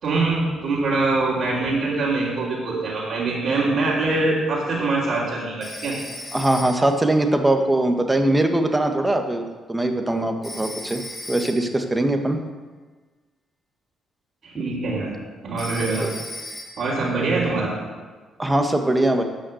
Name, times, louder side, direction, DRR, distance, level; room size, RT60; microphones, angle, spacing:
voice 1, 0.0-5.9 14.4-15.1 15.4-16.0 16.8-17.7, right 3 dB, 65° right, -8 dB, 3.3 m, -23 dB
Telephone, 5.6-7.0 10.4-11.8 15.6-17.0, left 1 dB, 25° left, 4.1 m, -37 dB
voice 2, 6.3-11.0 11.3-12.4 14.5-14.6 16.0-16.1 18.4-19.2, right 1 dB, 15° right, 5 dB, 1.4 m, -21 dB
13.0 x 5.6 x 7.8 m, 1.4 s
cardioid pair, 90°, 0 cm